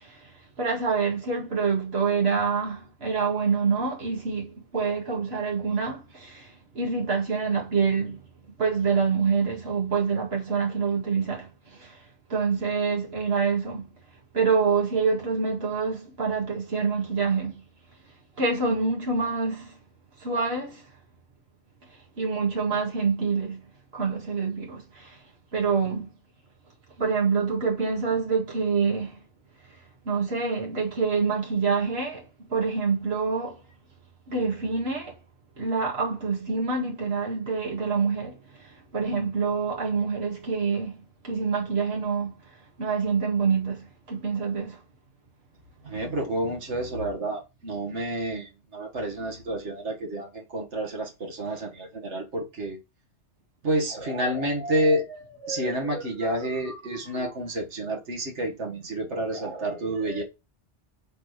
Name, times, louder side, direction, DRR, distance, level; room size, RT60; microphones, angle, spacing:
voice 1, 0.0-8.2 8.6-12.0 12.3-13.9 14.3-17.6 18.4-19.8 20.2-20.9 22.2-23.6 23.9-25.2 25.5-26.1 27.0-29.2 30.1-33.6 34.3-35.2 35.6-42.3 42.8-44.8, right 5 dB, 60° right, 2.4 m, -26 dB
voice 2, 45.8-52.8 53.6-60.2, right 1 dB, 80° right, 2.0 m, -29 dB
7.8 x 4.1 x 6.6 m
omnidirectional pair, 1.2 m